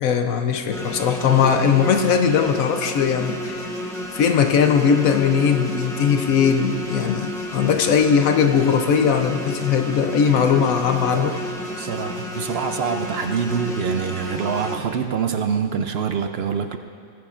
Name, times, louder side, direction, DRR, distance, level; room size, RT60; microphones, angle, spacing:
voice 1, 0.0-3.7 4.1-11.3, left 7 dB, 75° left, 6 dB, 1.1 m, -19 dB
sound 1, 0.7-14.8, left 1 dB, ahead, 1.3 m, -31 dB
voice 2, 11.8-16.8, right 7 dB, 65° right, 7 dB, 0.6 m, -25 dB
19.5 x 14.5 x 2.5 m, 2.3 s
omnidirectional pair, 1.5 m